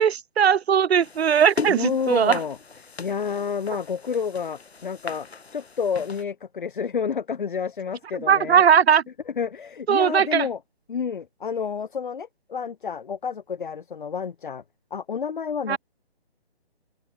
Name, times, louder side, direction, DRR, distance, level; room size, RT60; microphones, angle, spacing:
voice 1, 0.0-2.4 8.3-9.0 9.9-10.5 15.7-15.8, right 8 dB, 75° right, 0.6 m, -19 dB
sound 1, 1.0-6.2, left 4 dB, 80° left, 4.4 m, -37 dB
voice 2, 1.7-2.6 3.0-8.6 9.3-10.6 10.9-14.6 14.9-15.8, left 6 dB, 50° left, 1.6 m, -29 dB
open air
hypercardioid pair, 165°, 32 cm